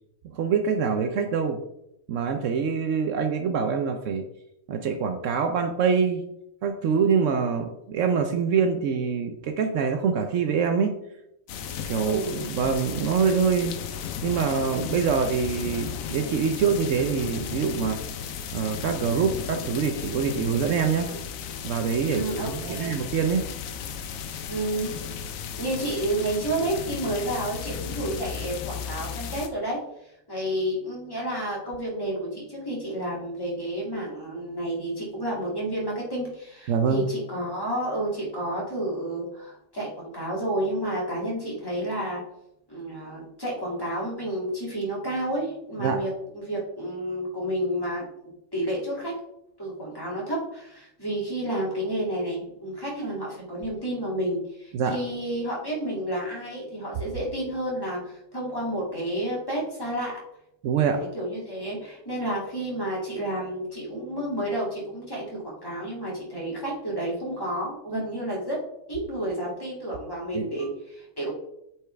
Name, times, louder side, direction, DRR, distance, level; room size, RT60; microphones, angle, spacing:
voice 1, 0.3-1.6 2.1-4.2 4.7-6.2 6.6-10.9 11.9-13.7 14.2-18.0 18.5-21.1 21.6-23.5 36.7-37.0 45.8-46.0 54.7-55.0 60.6-61.0 70.3-70.5, right 6 dB, 70° right, 6 dB, 0.9 m, -25 dB
sound 1, 11.5-29.5, left 7 dB, 85° left, 1.1 m, -35 dB
voice 2, 12.0-12.5 21.0-21.2 22.1-22.9 24.5-24.9 25.6-29.8 30.3-42.2 42.7-48.0 48.5-49.1 49.6-60.1 60.9-68.6 68.9-71.3, right 1 dB, 15° left, -4 dB, 2.2 m, -30 dB
8.0 x 4.6 x 3.3 m, 0.81 s
omnidirectional pair, 1.4 m